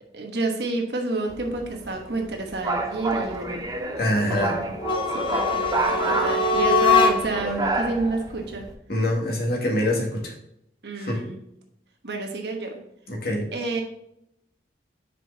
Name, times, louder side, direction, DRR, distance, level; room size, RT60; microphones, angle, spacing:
voice 1, 0.1-3.6 4.0-4.7 5.1-8.7 10.8-11.4 12.0-12.8 13.5-13.8, right 2 dB, 65° right, 2 dB, 1.1 m, -29 dB
sound 1, 1.3-8.7, right 2 dB, 20° right, 0.6 m, -29 dB
voice 2, 4.0-4.6 8.9-10.3 11.0-11.2 13.1-13.5, left 1 dB, 60° left, -1 dB, 1.9 m, -25 dB
sound 2, 4.8-7.5, left 3 dB, 30° left, 0.7 m, -22 dB
6.6 x 5.1 x 3.9 m, 0.78 s
head